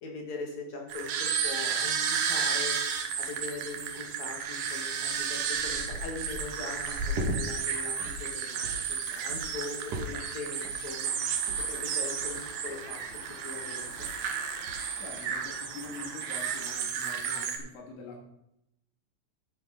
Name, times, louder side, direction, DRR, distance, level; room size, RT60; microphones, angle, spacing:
voice 1, 0.0-2.8 3.2-11.1 11.7-14.1, left 3 dB, 50° left, 1 dB, 2.3 m, -41 dB
sound 1, 0.9-17.6, right 7 dB, 75° right, 2.1 m, -33 dB
sound 2, 2.6-2.8 3.1-3.4 4.0-4.1 4.7-4.8 5.1-7.4 7.8-8.3 8.6-8.9 9.3-9.6 9.9-10.3 10.6-11.0 11.5-11.6 11.9-12.0 12.2-12.6 13.0-13.2 13.5-13.6 13.8-14.2 14.7-14.8, equal, 55° right, 2.6 m, -37 dB
sound 3, 11.0-16.7, left 1 dB, 25° left, 1.6 m, -51 dB
voice 2, 15.0-18.2, left 3 dB, 75° left, 1 dB, 4.2 m, -44 dB
11.0 x 10.0 x 3.8 m, 0.81 s
omnidirectional pair, 5.5 m